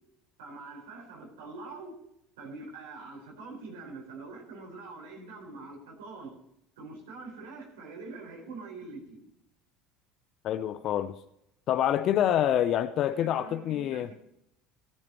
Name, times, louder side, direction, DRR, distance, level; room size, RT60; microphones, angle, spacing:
voice 1, 0.4-2.0 2.4-6.4 6.8-9.2 12.3-12.4 13.0-14.1, right 3 dB, 80° right, 4.4 m, -44 dB
voice 2, 10.4-11.2 11.7-14.1, left 10 dB, 55° left, 0.7 m, -26 dB
18.0 x 11.0 x 3.0 m
hypercardioid pair, 75°, 0 cm